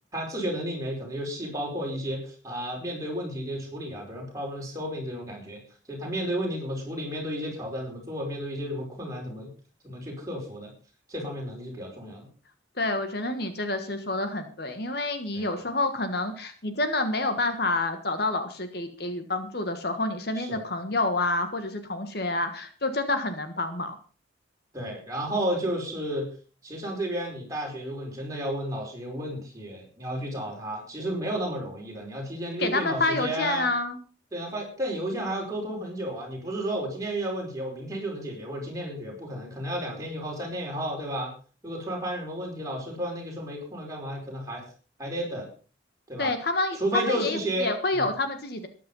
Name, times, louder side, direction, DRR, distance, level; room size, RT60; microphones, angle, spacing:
voice 1, 0.1-5.6 5.9-9.5 9.8-10.7 11.1-12.3 15.3-15.5 20.3-20.6 24.7-26.3 26.6-33.7 34.3-41.3 41.6-44.6 45.0-45.5 46.1-46.3 46.7-48.1, right 1 dB, 15° right, -2 dB, 4.9 m, -32 dB
voice 2, 12.8-23.9 32.6-34.0 46.2-48.7, left 2 dB, 55° left, 8 dB, 1.6 m, -28 dB
14.0 x 10.5 x 5.5 m, 0.38 s
head